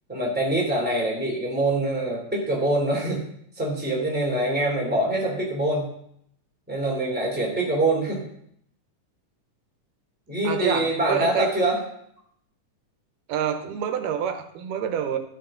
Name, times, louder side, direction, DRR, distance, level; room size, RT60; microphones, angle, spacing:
voice 1, 0.1-3.2 3.6-5.9 6.7-8.2 10.3-11.8, right 1 dB, 5° right, -3 dB, 2.7 m, -24 dB
voice 2, 10.4-11.5 13.3-15.2, right 8 dB, 85° right, 8 dB, 2.4 m, -27 dB
12.5 x 9.0 x 3.8 m, 0.71 s
omnidirectional pair, 3.6 m